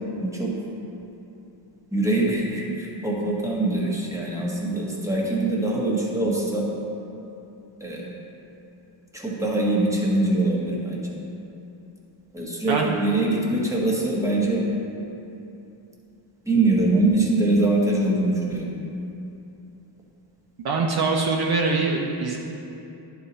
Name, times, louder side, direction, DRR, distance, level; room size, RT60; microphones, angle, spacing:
voice 1, 0.2-0.5 1.9-6.7 7.8-8.1 9.1-11.0 12.3-14.6 16.5-18.7, right 2 dB, 5° right, -3 dB, 1.2 m, -23 dB
voice 2, 20.6-22.4, right 3 dB, 50° right, 0 dB, 0.7 m, -23 dB
10.5 x 4.1 x 4.1 m, 2.8 s
cardioid pair, 110°, 48 cm